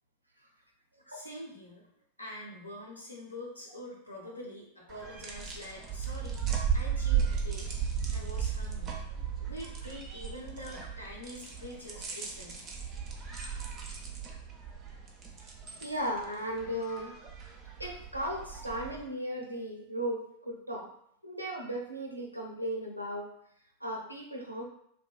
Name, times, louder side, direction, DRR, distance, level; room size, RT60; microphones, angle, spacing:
voice 1, 1.1-1.8 2.2-7.8 8.1-9.0 9.4-12.7, left 1 dB, 80° left, -2 dB, 0.6 m, -45 dB
sound 1, 4.9-19.0, right 7 dB, 30° right, 0.5 m, -35 dB
voice 2, 15.8-17.1 17.8-20.9 21.2-23.3 23.8-24.6, equal, 90° right, -1 dB, 0.4 m, -36 dB
2.5 x 2.2 x 2.3 m, 0.70 s
figure-of-eight pair, 90°, 0 cm